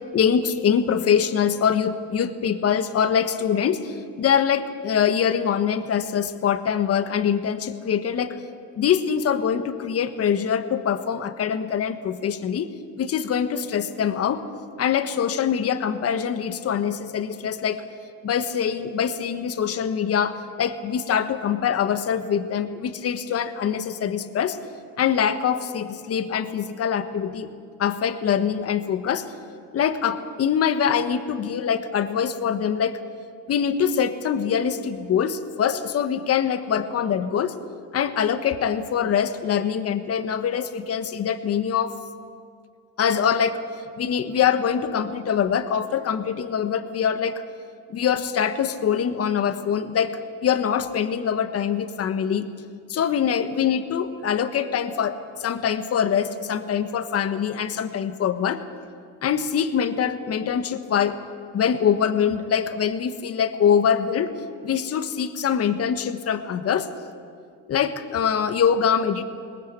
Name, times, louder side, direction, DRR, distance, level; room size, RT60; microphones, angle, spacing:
voice 1, 0.1-8.4 8.8-12.7 13.0-14.4 14.8-17.8 18.2-24.6 25.0-27.5 27.8-29.2 29.7-33.0 33.5-37.5 37.9-41.9 43.0-43.6 44.0-47.4 47.9-52.5 52.9-58.6 59.2-61.2 61.5-64.3 64.6-66.9 67.7-69.2, left 8 dB, 40° left, 9 dB, 1.4 m, -24 dB
21.0 x 20.0 x 8.2 m, 2.3 s
supercardioid pair, 110°, 37 cm